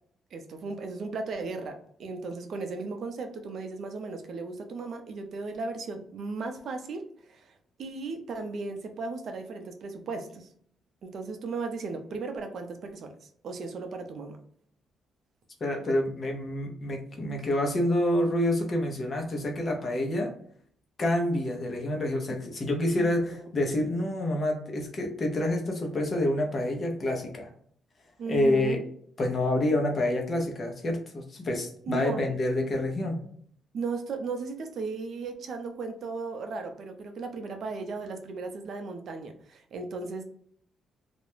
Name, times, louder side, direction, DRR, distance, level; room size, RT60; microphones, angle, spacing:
voice 1, 0.3-7.5 7.8-10.5 11.0-14.4 23.0-23.5 28.2-28.8 31.9-32.3 33.7-40.2, right 4 dB, 55° right, 6 dB, 0.5 m, -36 dB
voice 2, 15.6-20.3 21.0-27.5 28.3-28.8 29.2-33.2, left 1 dB, 35° left, 2 dB, 0.6 m, -28 dB
2.4 x 2.1 x 3.0 m, 0.62 s
cardioid pair, 135°, 0 cm